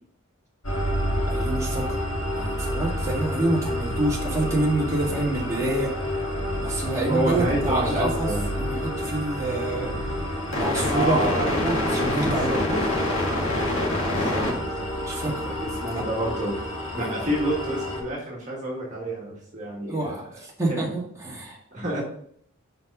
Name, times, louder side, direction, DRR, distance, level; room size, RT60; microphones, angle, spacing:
sound 1, 0.6-18.0, left 1 dB, 70° left, 2.2 m, -27 dB
voice 1, 1.3-2.0 2.3-5.9 6.6-8.3 8.5-10.0 10.6-11.2 11.6-12.9 14.1-15.5 15.8-16.0 16.9-17.2 19.9-21.6, right 2 dB, 15° right, -4 dB, 2.1 m, -28 dB
voice 2, 7.1-8.4 10.9-11.6 12.2-12.6 14.1-14.9 15.2-20.1 20.7-20.9 21.7-22.0, right 1 dB, 35° right, -3 dB, 1.8 m, -29 dB
6.0 x 5.3 x 5.4 m, 0.65 s
head